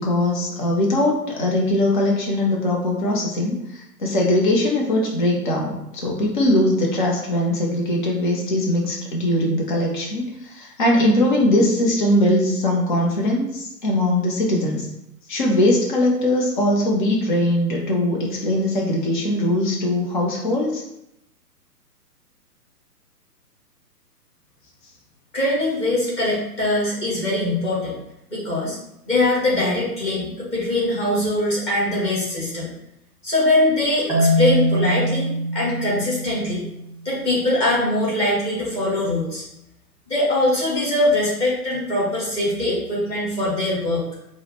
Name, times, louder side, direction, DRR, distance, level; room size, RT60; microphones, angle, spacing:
voice 1, 0.0-14.9 15.3-20.8, left 1 dB, 30° left, -1 dB, 0.5 m, -21 dB
voice 2, 25.3-27.9 28.3-28.8 29.1-32.7 33.2-36.6 37.0-39.4 40.1-44.1, left 1 dB, 15° left, -7 dB, 1.1 m, -22 dB
Marimba xylophone, 34.1-37.1, right 1 dB, 10° right, 1.0 m, -23 dB
4.7 x 2.1 x 4.2 m, 0.82 s
figure-of-eight pair, 125°, 48 cm